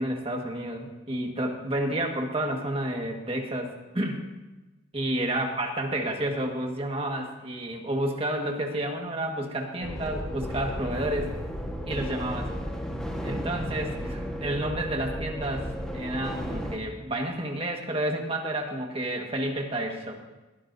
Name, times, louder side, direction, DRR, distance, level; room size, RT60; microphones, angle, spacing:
voice 1, 0.0-4.2 4.9-11.4 11.8-12.5 13.2-20.2, right 1 dB, 25° right, 1 dB, 1.7 m, -30 dB
sound 1, 9.8-16.8, equal, 5° left, 1.4 m, -34 dB
21.0 x 13.0 x 2.7 m, 1.1 s
head